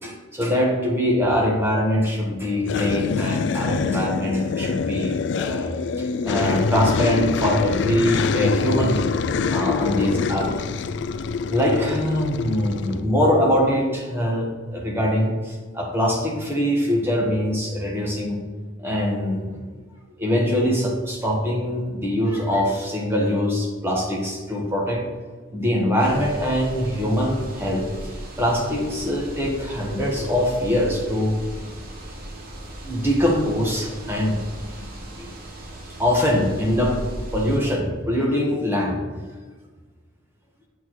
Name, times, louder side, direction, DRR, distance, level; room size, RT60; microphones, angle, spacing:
voice 1, 0.0-5.7 6.0-9.1 9.5-10.5 11.5-18.4 18.8-19.6 20.2-25.0 25.5-27.9 28.4-31.4 32.8-34.4 35.2-35.3 36.0-37.0 37.3-39.0, equal, 10° right, -2 dB, 1.3 m, -23 dB
sound 1, 2.6-13.0, left 5 dB, 60° left, 0.3 m, -25 dB
sound 2, 26.0-37.6, right 1 dB, 50° right, 1.1 m, -37 dB
8.2 x 6.5 x 3.1 m, 1.4 s
head